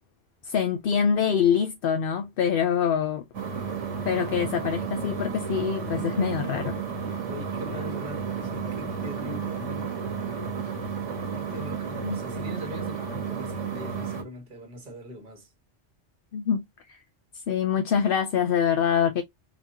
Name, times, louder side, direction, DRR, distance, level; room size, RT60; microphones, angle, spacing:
voice 1, 0.4-3.2 4.0-6.7 12.0-12.2 16.3-16.6 16.9-17.0 17.5-19.2, left 7 dB, 60° left, 0.6 m, -25 dB
sound 1, 3.3-14.2, right 6 dB, 80° right, 1.6 m, -32 dB
voice 2, 7.3-10.0 11.3-15.5, equal, 40° right, 1.6 m, -41 dB
4.0 x 2.9 x 2.7 m
omnidirectional pair, 1.2 m